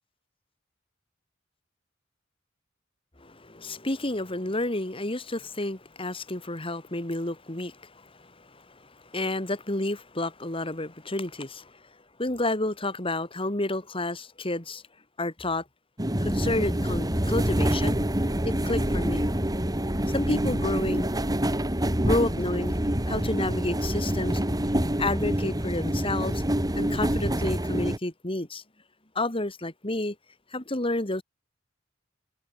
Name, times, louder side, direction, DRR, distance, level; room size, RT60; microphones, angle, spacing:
voice 1, 3.2-11.7 12.2-14.8 15.2-15.6 16.2-18.0 18.4-19.2 20.1-21.1 22.0-22.8 23.1-24.4 25.0-26.4 26.8-28.6 29.1-30.1 30.5-31.2, left 2 dB, 30° left, 3.0 m, -30 dB
sound 1, 16.0-28.0, right 1 dB, 20° right, 2.6 m, -26 dB
head